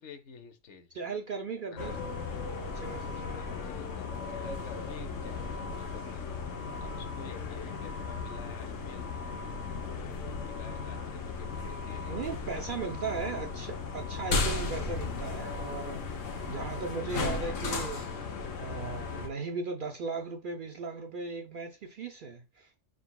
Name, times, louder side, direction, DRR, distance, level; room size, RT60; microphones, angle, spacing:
voice 1, 0.0-1.0 1.7-1.9 3.3-6.2 6.8-9.1 9.9-13.5, left 7 dB, 70° left, 1.0 m, -50 dB
voice 2, 0.9-2.3 2.6-3.2 6.0-6.1 12.0-18.1 18.6-22.8, right 4 dB, 60° right, 0.6 m, -37 dB
sound 1, 1.8-19.3, left 4 dB, 85° left, 1.2 m, -36 dB
4.5 x 3.9 x 2.2 m
omnidirectional pair, 1.3 m